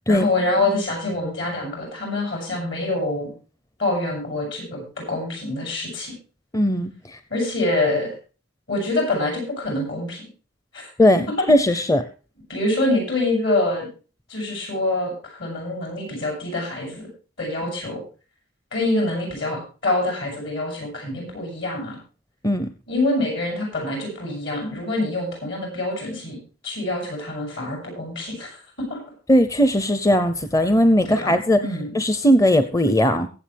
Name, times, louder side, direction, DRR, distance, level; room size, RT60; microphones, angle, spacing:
voice 1, 0.1-3.3 3.8-6.1 7.3-8.1 8.7-10.2 12.5-13.9 14.3-17.1 17.4-18.0 18.7-22.0 22.9-26.4 26.6-28.5 28.8-29.0 31.1-31.3 31.6-31.9, left 2 dB, 65° left, 0 dB, 7.8 m, -25 dB
voice 2, 6.5-7.2 11.0-12.1 22.4-22.7 29.3-31.6 31.9-33.3, equal, 15° left, 11 dB, 0.6 m, -18 dB
23.0 x 7.9 x 3.4 m, 0.35 s
head